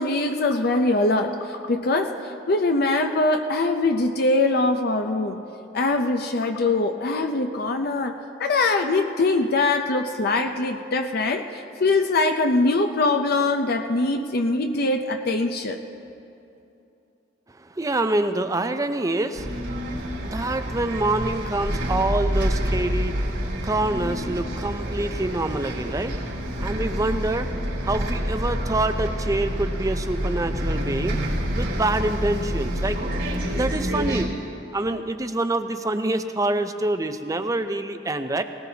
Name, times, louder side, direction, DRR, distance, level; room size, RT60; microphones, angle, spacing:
voice 1, 0.0-5.4 5.7-8.1 8.4-15.8, left 2 dB, 55° left, 5 dB, 0.6 m, -22 dB
voice 2, 17.5-31.2 31.5-33.0 33.5-34.3 34.7-38.4, right 2 dB, 20° right, 9 dB, 0.5 m, -26 dB
Bus, 19.3-34.2, equal, 80° right, 3.2 m, -27 dB
19.0 x 19.0 x 2.8 m, 2.8 s
head